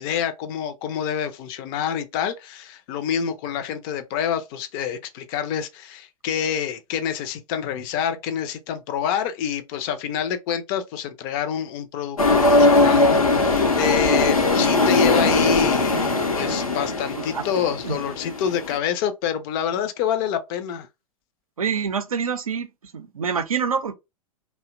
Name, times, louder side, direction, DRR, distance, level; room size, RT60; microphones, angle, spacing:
voice 1, 0.0-20.9, left 8 dB, 40° left, 0.4 m, -27 dB
sound 1, 12.2-18.8, left 2 dB, 85° left, 0.7 m, -20 dB
voice 2, 17.1-17.4 17.8-18.0 21.6-22.7 22.9-23.9, right 6 dB, 80° right, 0.5 m, -26 dB
2.7 x 2.1 x 2.4 m
figure-of-eight pair, 95°, 18 cm